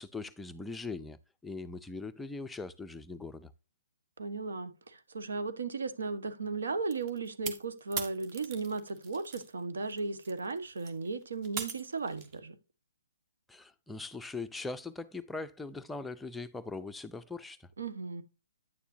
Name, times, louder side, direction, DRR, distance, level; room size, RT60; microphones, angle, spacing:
voice 1, 0.0-3.5 13.5-17.7, left 3 dB, 5° left, 0.5 m, -41 dB
voice 2, 4.2-12.6 17.8-18.2, right 4 dB, 70° right, 1.4 m, -36 dB
sound 1, 6.9-9.5 9.8-12.4, right 6 dB, 30° right, 1.4 m, -41 dB
9.6 x 6.9 x 2.7 m
hypercardioid pair, 140°, 0 cm